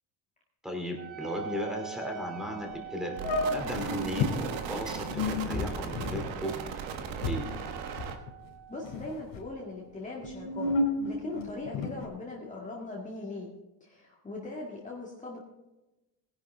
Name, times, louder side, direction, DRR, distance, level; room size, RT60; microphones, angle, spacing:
voice 1, 0.6-3.1 3.5-6.5 7.3-7.4, equal, ahead, 1 dB, 2.7 m, -36 dB
Wind instrument woodwind instrument, 1.0-9.9, right 11 dB, 30° right, 4.3 m, -46 dB
sound 1, 2.6-2.7 3.2-4.3 5.0-8.5 8.8-9.4 10.1-12.1, left 3 dB, 80° left, 4.8 m, -32 dB
sound 2, 3.2-8.2, right 7 dB, 85° right, 1.5 m, -37 dB
voice 2, 8.7-10.7 11.0-13.5 13.8-15.4, left 2 dB, 15° left, -4 dB, 1.9 m, -40 dB
18.0 x 11.0 x 3.5 m, 1.0 s
cardioid pair, 130°, 44 cm